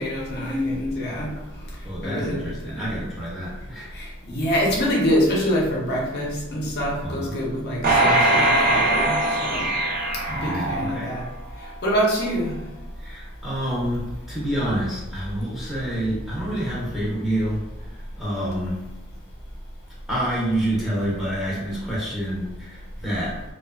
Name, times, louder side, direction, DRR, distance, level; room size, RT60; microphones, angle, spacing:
voice 1, 0.0-1.3 2.0-2.5 3.9-9.7 10.3-11.2 11.8-12.5, equal, 50° left, -3 dB, 0.5 m, -25 dB
voice 2, 1.8-3.9 7.0-7.3 10.3-11.1 13.0-17.6 17.9-18.8 20.1-23.4, right 1 dB, ahead, -8 dB, 0.6 m, -28 dB
sound 1, 7.8-11.3 11.8-11.9, right 1 dB, 45° right, 0.5 m, -21 dB
2.5 x 2.1 x 2.3 m, 1.0 s
head